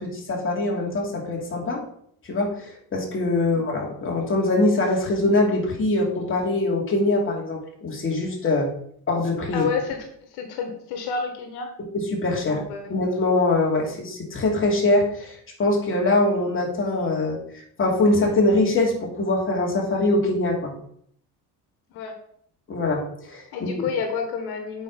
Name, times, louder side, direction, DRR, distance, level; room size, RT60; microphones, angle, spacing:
voice 1, 0.0-1.8 2.3-8.7 9.1-9.7 11.9-12.6 12.9-17.4 17.8-20.7 22.7-23.7, left 2 dB, 35° left, -1 dB, 2.8 m, -23 dB
voice 2, 9.5-11.7 12.4-12.9 21.9-22.2 23.5-24.8, left 5 dB, 85° left, 4 dB, 1.6 m, -30 dB
8.4 x 5.2 x 5.3 m, 0.66 s
cardioid pair, 110°, 38 cm